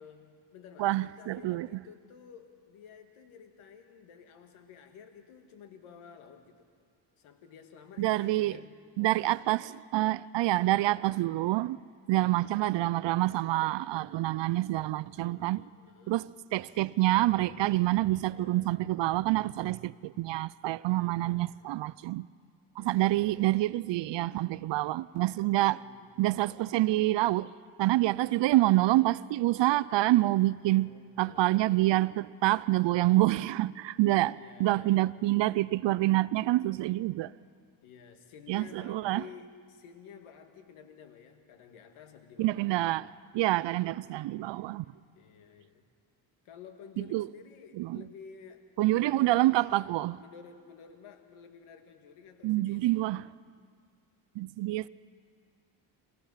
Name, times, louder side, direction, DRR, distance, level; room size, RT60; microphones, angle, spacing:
voice 1, 0.0-6.7 7.2-8.7 13.8-14.6 15.2-16.3 18.3-18.7 20.9-21.6 22.8-23.3 25.6-26.1 30.7-31.5 34.4-35.1 37.8-43.1 45.1-45.9 46.4-48.6 48.9-49.5 49.9-52.9, left 7 dB, 80° left, 2.1 m, -52 dB
voice 2, 0.8-1.7 8.0-8.6 9.0-11.8 12.1-15.6 16.1-22.3 22.8-25.8 26.2-27.5 27.8-30.9 31.2-37.3 38.5-39.2 42.4-43.1 43.3-44.8 47.0-47.3 47.8-48.0 48.8-50.2 52.4-53.2 54.4-54.9, right 17 dB, 60° right, 0.5 m, -27 dB
29.5 x 15.5 x 5.7 m
supercardioid pair, 70°, 49 cm